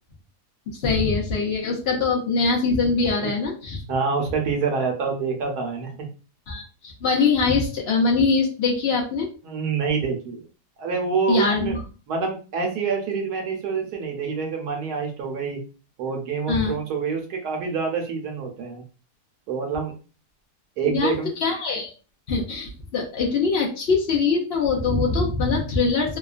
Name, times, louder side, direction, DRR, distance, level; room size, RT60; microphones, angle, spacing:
voice 1, 0.7-3.8 6.5-9.3 11.3-11.8 16.5-16.7 20.9-21.1 21.4-21.9 22.3-26.2, left 4 dB, 65° left, 0 dB, 0.6 m, -23 dB
voice 2, 3.9-6.1 9.4-10.4 10.8-11.8 12.1-15.6 16.0-18.8 19.5-19.9 20.8-21.3, right 5 dB, 75° right, 2 dB, 1.2 m, -26 dB
2.8 x 2.2 x 2.4 m, 0.35 s
omnidirectional pair, 1.8 m